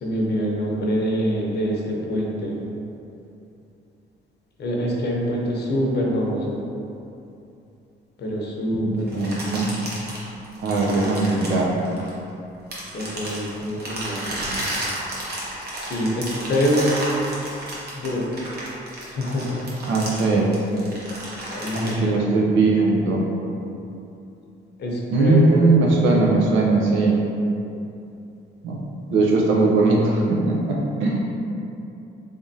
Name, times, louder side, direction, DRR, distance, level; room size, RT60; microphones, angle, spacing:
voice 1, 0.0-2.6 4.6-6.6 8.2-9.5 12.9-14.4 15.8-17.1 17.5-17.6 18.0-18.4 19.1-19.7 21.5-22.3 24.8-26.2, equal, 55° left, -2 dB, 0.8 m, -25 dB
voice 2, 8.7-9.7 10.6-11.7 19.9-20.5 21.7-23.2 25.1-27.2 28.6-28.8 29.1-31.2, right 3 dB, 80° right, -2 dB, 0.7 m, -20 dB
sound 1, 9.1-12.3 12.7-21.9, right 1 dB, 55° right, 1.0 m, -32 dB
3.5 x 3.4 x 2.7 m, 2.7 s
cardioid pair, 90°, 20 cm